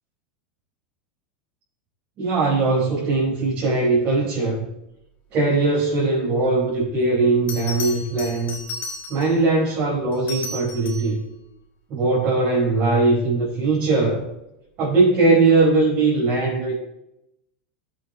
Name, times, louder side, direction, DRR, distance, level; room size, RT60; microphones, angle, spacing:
voice 1, 2.2-4.6 5.3-8.6 9.1-11.2 11.9-14.2 14.8-16.7, right 3 dB, 40° right, -6 dB, 4.8 m, -20 dB
Bell, 6.9-7.0 7.5-9.4 10.1-11.2 13.9-14.1, left 2 dB, 30° left, 3.8 m, -34 dB
14.5 x 8.1 x 3.5 m, 0.87 s
supercardioid pair, 135°, 5 cm